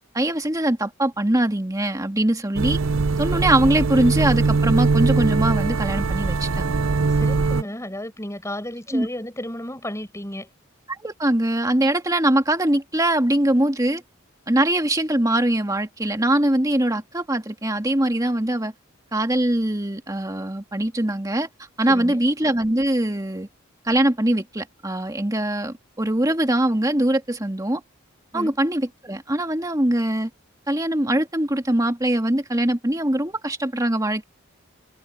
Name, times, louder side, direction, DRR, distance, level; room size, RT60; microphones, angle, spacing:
voice 1, 0.1-2.8 3.2-6.8 8.9-9.1 10.9-14.0 14.5-18.7 19.1-21.5 21.8-23.5 23.8-27.8 28.3-30.3 30.7-34.2, right 1 dB, 15° right, 2.1 m, -22 dB
sound 1, 2.6-7.6, right 4 dB, 85° right, 0.7 m, -21 dB
voice 2, 7.1-10.5 21.9-22.2 28.3-28.6, left 1 dB, 15° left, 6.5 m, -33 dB
head